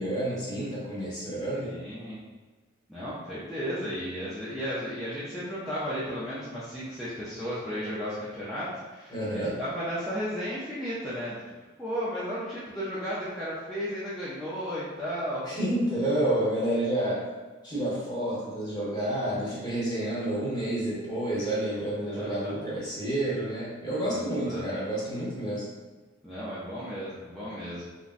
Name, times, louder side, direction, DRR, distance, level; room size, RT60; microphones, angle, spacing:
voice 1, 0.0-1.7 9.1-9.6 15.4-17.2 17.6-25.7, right 1 dB, 20° left, -7 dB, 1.0 m, -29 dB
voice 2, 1.5-2.2 2.9-11.4 11.8-15.4 22.1-22.6 24.1-24.7 26.2-27.9, equal, ahead, -12 dB, 0.4 m, -34 dB
3.7 x 2.1 x 2.5 m, 1.3 s
head